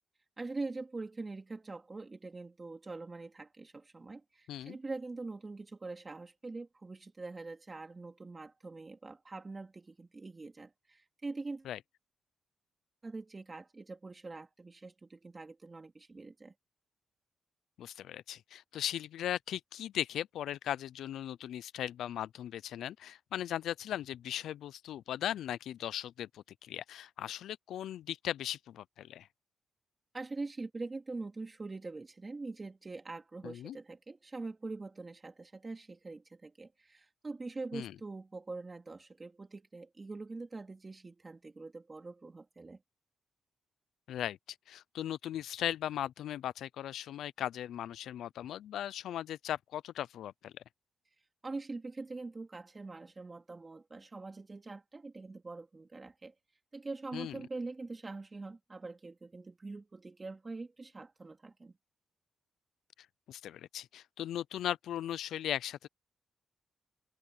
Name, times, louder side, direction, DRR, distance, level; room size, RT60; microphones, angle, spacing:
voice 1, 0.4-11.7 13.0-16.5 30.1-42.8 51.4-56.3 56.7-61.7, right 3 dB, 25° right, 2.4 m, -44 dB
voice 2, 17.8-29.3 33.4-33.8 37.7-37.9 44.1-44.4 44.7-50.6 57.1-57.3 63.3-65.9, left 11 dB, 85° left, 0.4 m, -38 dB
cardioid pair, 115°, 0 cm